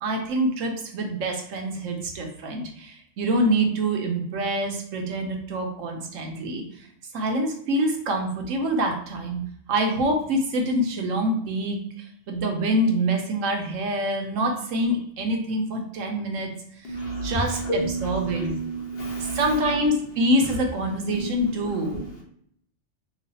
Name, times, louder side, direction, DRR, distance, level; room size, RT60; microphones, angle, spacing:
voice 1, 0.0-6.9 7.1-9.4 9.7-16.5 16.8-18.5 19.2-22.0, right 1 dB, 85° right, 2 dB, 1.1 m, -26 dB
voice 2, 16.8-19.9 20.4-20.5 21.1-21.3 21.6-22.2, right 2 dB, 55° left, -1 dB, 1.0 m, -30 dB
3.1 x 2.4 x 4.0 m, 0.68 s
omnidirectional pair, 1.3 m